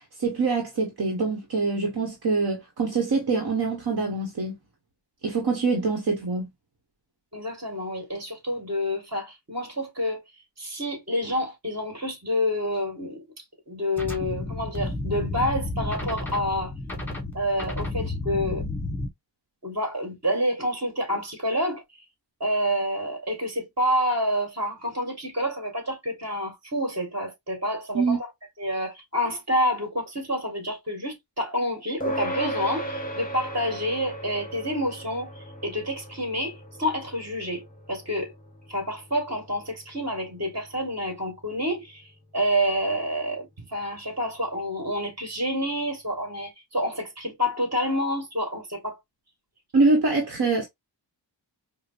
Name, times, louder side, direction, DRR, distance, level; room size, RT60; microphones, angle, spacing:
voice 1, 0.0-4.6 5.2-6.5 27.9-28.2 49.7-50.6, right 3 dB, 60° right, 1.0 m, -24 dB
voice 2, 7.3-10.2 10.6-13.2 13.7-16.7 17.3-18.6 19.6-21.8 22.4-28.3 28.6-38.3 38.7-49.0, equal, 35° right, 1.8 m, -28 dB
sound 1, 14.0-19.1, left 2 dB, 5° left, 1.2 m, -31 dB
sound 2, 32.0-41.7, right 1 dB, 20° left, 0.8 m, -37 dB
4.8 x 2.0 x 2.5 m
wide cardioid pair, 120°, 43 cm